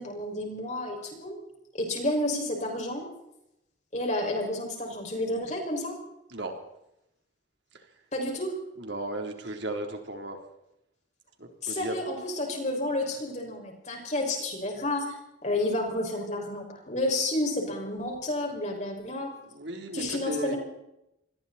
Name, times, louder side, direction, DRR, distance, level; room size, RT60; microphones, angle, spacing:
voice 1, 0.0-1.4 1.7-3.1 3.9-5.9 8.1-8.6 11.6-15.1 15.4-19.3 19.9-20.6, left 1 dB, 35° left, 1 dB, 6.0 m, -30 dB
voice 2, 8.8-10.4 11.4-12.0 19.5-20.6, right 1 dB, 65° right, 4 dB, 3.7 m, -35 dB
28.0 x 21.0 x 4.3 m, 0.84 s
head